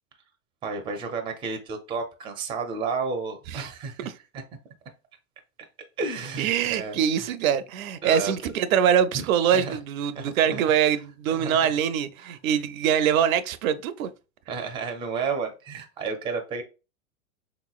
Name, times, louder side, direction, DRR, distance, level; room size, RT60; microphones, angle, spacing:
voice 1, 0.6-4.4 6.0-7.3 8.0-8.3 9.1-9.2 9.5-9.8 10.1-10.6 11.4-11.7 12.2-12.4 14.5-16.6, right 4 dB, 15° right, 0.4 m, -32 dB
voice 2, 6.4-14.1, right 9 dB, 75° right, 0.5 m, -23 dB
3.5 x 3.0 x 2.3 m
hypercardioid pair, 120°, 41 cm